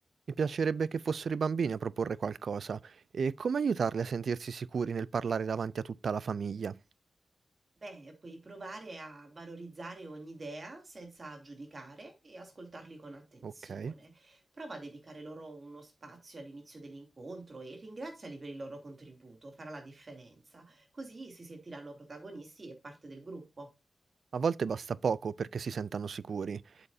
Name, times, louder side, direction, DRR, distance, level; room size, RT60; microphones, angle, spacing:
voice 1, 0.4-6.7 13.4-13.9 24.3-26.6, right 6 dB, 75° right, 0.3 m, -32 dB
voice 2, 7.8-23.7, right 2 dB, 45° right, 2.7 m, -46 dB
8.0 x 7.6 x 2.6 m
wide cardioid pair, 100°, 0 cm